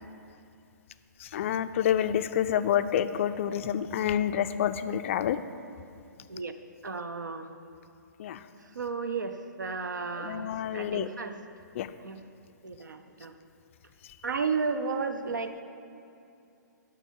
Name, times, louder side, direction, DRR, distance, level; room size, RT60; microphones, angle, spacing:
voice 1, 1.2-5.4 8.2-8.4 10.2-11.1 11.8-11.9, left 10 dB, 40° left, 12 dB, 0.4 m, -28 dB
voice 2, 6.8-7.5 8.7-11.3 12.0-12.2 12.6-13.3 14.2-15.6, right 4 dB, 70° right, 8 dB, 0.6 m, -33 dB
7.7 x 5.9 x 6.3 m, 2.6 s
figure-of-eight pair, 125°, 10 cm